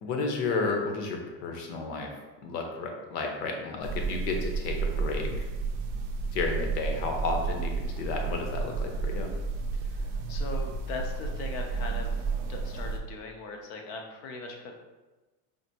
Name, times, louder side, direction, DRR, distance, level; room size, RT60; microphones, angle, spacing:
voice 1, 0.0-2.1 2.4-5.5 6.3-9.3, left 3 dB, 70° left, 2 dB, 0.9 m, -32 dB
sound 1, 3.8-13.0, right 4 dB, 60° right, 0.5 m, -32 dB
voice 2, 9.7-12.2 12.5-14.8, left 3 dB, 40° left, 2 dB, 0.5 m, -40 dB
5.0 x 2.5 x 2.8 m, 1.2 s
supercardioid pair, 170°, 50 cm